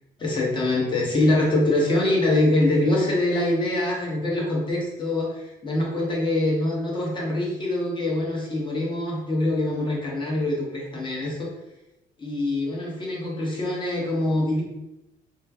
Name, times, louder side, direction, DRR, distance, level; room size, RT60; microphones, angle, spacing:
voice 1, 0.2-11.5 12.2-14.6, left 1 dB, 30° left, -3 dB, 1.1 m, -24 dB
3.1 x 2.2 x 3.5 m, 0.93 s
cardioid pair, 110°, 17 cm